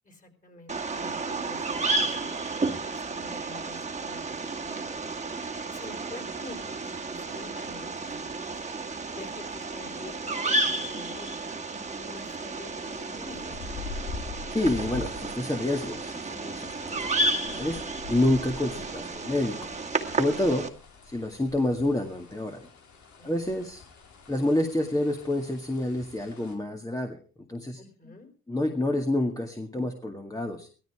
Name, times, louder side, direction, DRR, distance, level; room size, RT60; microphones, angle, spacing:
voice 1, 0.0-5.1 5.7-8.6 9.1-13.5 20.5-20.7 23.2-23.3 27.8-28.3, left 2 dB, 25° left, 5 dB, 4.9 m, -47 dB
Bird vocalization bird call bird song, 0.7-20.7, right 3 dB, 25° right, 2.0 m, -32 dB
sound 1, 12.7-26.5, left 4 dB, 70° left, 4.1 m, -44 dB
voice 2, 14.5-17.8 18.1-19.6 20.1-20.7 21.0-22.6 23.2-23.8 24.3-27.2 27.5-27.8 28.5-30.7, left 1 dB, 10° left, 3 dB, 2.0 m, -28 dB
16.5 x 13.5 x 4.8 m, 0.39 s
cardioid pair, 90°, 30 cm